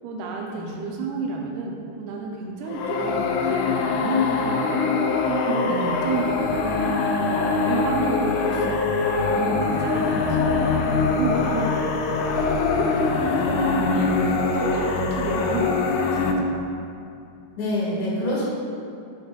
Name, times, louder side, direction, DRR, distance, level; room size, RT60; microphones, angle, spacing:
voice 1, 0.0-6.8 7.2-8.8 9.2-16.6, right 4 dB, 80° right, 0 dB, 2.0 m, -31 dB
sound 1, 2.7-16.3, left 4 dB, 90° left, 1.7 m, -23 dB
voice 2, 17.6-18.4, left 1 dB, 60° left, -7 dB, 2.7 m, -27 dB
7.1 x 3.5 x 4.8 m, 2.7 s
omnidirectional pair, 4.1 m